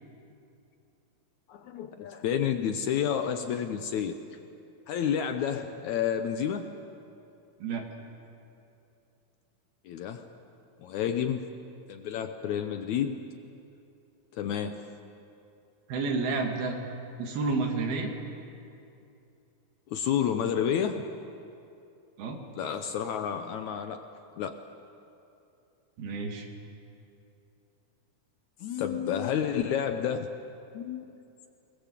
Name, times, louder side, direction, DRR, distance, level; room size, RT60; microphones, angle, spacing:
voice 1, 1.5-4.2 4.9-6.7 9.9-10.3 10.8-11.5 11.9-13.2 14.3-14.9 19.9-21.1 22.5-24.0 24.4-24.6 28.6-30.3 30.7-31.0, left 8 dB, 75° left, 7 dB, 1.7 m, -30 dB
voice 2, 15.9-16.8 17.2-18.1 22.2-22.4 26.0-26.5, right 3 dB, 80° right, 2 dB, 3.9 m, -30 dB
26.0 x 20.5 x 7.5 m, 2.7 s
omnidirectional pair, 4.3 m